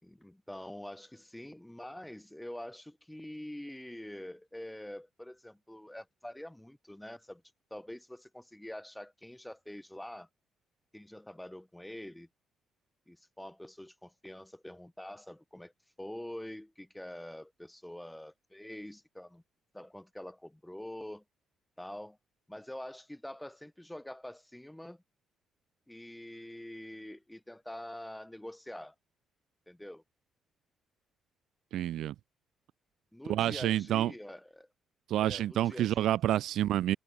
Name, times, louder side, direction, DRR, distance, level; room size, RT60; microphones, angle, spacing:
voice 1, 0.0-7.4 7.7-10.3 10.9-12.3 13.1-15.7 16.0-19.4 19.7-21.2 21.8-22.2 22.5-25.0 25.9-28.9 29.7-30.0 33.1-34.7 35.2-36.1, left 1 dB, 5° left, 4.3 m, -45 dB
voice 2, 31.7-32.1 33.3-34.1 35.1-37.0, right 12 dB, 80° right, 0.4 m, -28 dB
cardioid pair, 90°, 0 cm